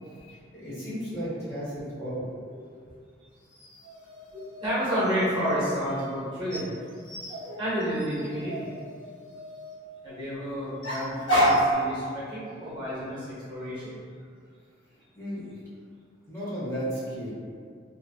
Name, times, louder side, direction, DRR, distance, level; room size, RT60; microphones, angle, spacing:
voice 1, 0.3-2.2 15.1-15.6 16.3-17.3, equal, 15° left, -11 dB, 0.8 m, -34 dB
sound 1, 3.5-5.5 6.5-9.7 10.8-11.7, equal, 90° left, 0.9 m, -29 dB
voice 2, 4.3-6.7 7.6-8.7 10.0-13.9, equal, 25° right, -10 dB, 0.8 m, -30 dB
2.6 x 2.5 x 2.2 m, 2.1 s
head